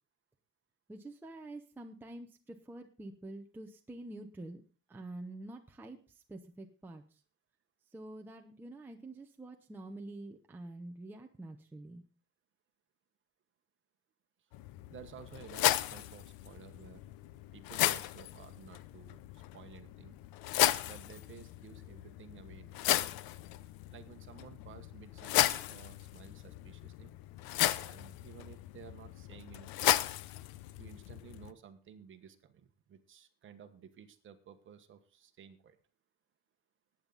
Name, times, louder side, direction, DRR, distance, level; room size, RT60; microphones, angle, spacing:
voice 1, 0.9-4.6 4.9-7.2 7.9-12.0, right 2 dB, 5° right, 2 dB, 0.8 m, -47 dB
sound 1, 14.5-31.5, left 14 dB, 90° left, 0.8 m, -35 dB
voice 2, 14.9-17.1 17.5-20.2 20.8-22.8 23.9-27.1 27.8-30.0 30.8-35.8, right 8 dB, 35° right, 8 dB, 1.3 m, -54 dB
19.0 x 9.1 x 4.0 m, 0.37 s
cardioid pair, 175°, 35 cm